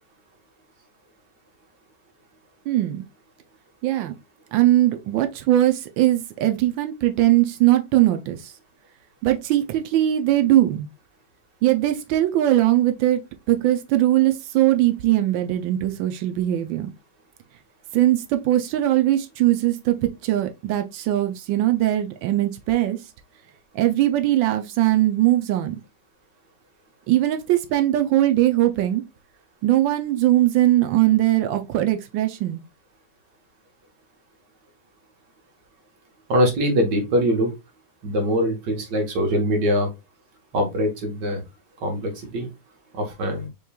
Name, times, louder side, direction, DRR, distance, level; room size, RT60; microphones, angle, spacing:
voice 1, 2.7-3.0 3.8-4.1 4.5-8.5 9.2-10.9 11.6-16.9 17.9-23.0 23.7-25.8 27.1-29.0 29.6-32.6, right 14 dB, 90° right, 1.4 m, -20 dB
voice 2, 36.3-37.5 38.0-39.9 40.5-41.4 41.8-42.5 42.9-43.5, equal, 65° right, 1.9 m, -22 dB
5.6 x 3.1 x 2.3 m
omnidirectional pair, 2.0 m